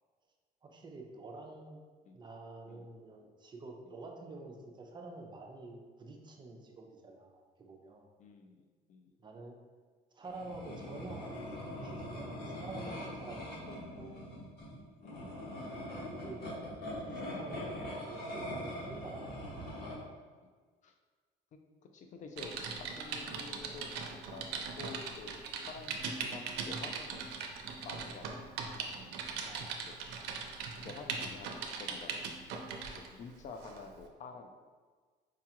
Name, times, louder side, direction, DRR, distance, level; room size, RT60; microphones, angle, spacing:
voice 1, 0.6-1.8 2.1-8.0 9.2-9.6 10.1-14.2 16.0-16.4 17.0-19.4 29.4-29.8, right 2 dB, 25° right, 1 dB, 0.5 m, -48 dB
voice 2, 8.2-9.2 15.0-15.5 20.4-20.5 20.8-20.9 21.9-24.0 24.3-24.5 24.8-27.2 27.8-28.8 30.8-32.7 33.1-34.6, left 4 dB, 45° left, 5 dB, 0.4 m, -49 dB
sound 1, 10.2-20.0, equal, 70° left, 1.2 m, -42 dB
Typing, 22.4-33.1 33.6-33.8, right 5 dB, 85° right, 0.5 m, -40 dB
4.7 x 2.3 x 2.8 m, 1.5 s
cardioid pair, 110°, 17 cm